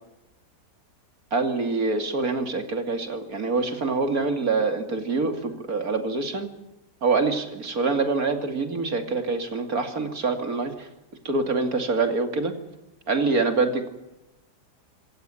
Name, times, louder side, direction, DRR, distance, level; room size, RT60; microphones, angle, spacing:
voice 1, 1.3-6.5 7.0-10.9 11.2-12.5 13.1-13.9, right 3 dB, 60° right, 7 dB, 3.1 m, -25 dB
26.5 x 15.5 x 9.0 m, 0.94 s
omnidirectional pair, 1.8 m